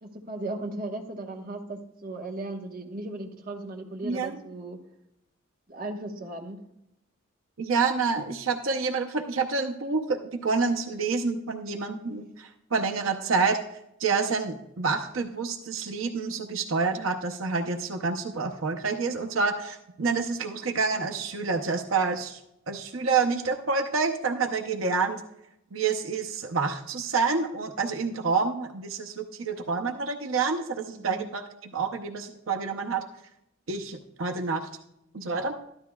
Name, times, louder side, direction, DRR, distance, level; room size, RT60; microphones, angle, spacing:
voice 1, 0.0-4.8 5.7-6.6 11.7-12.0 30.9-31.3, right 2 dB, 45° right, 2 dB, 1.2 m, -37 dB
voice 2, 7.6-13.6 14.0-22.4 22.7-25.2 25.7-33.0 33.7-34.7 35.1-35.6, right 4 dB, 90° right, 3 dB, 0.7 m, -28 dB
13.0 x 11.5 x 2.3 m, 0.82 s
head